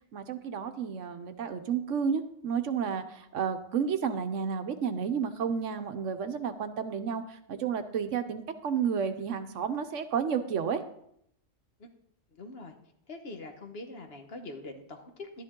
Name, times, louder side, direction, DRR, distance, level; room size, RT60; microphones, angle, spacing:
voice 1, 0.1-10.8, right 7 dB, 70° right, 9 dB, 1.1 m, -31 dB
voice 2, 12.4-12.7 13.1-15.4, left 2 dB, 50° left, 5 dB, 1.3 m, -43 dB
12.0 x 10.5 x 3.7 m, 0.73 s
omnidirectional pair, 1.4 m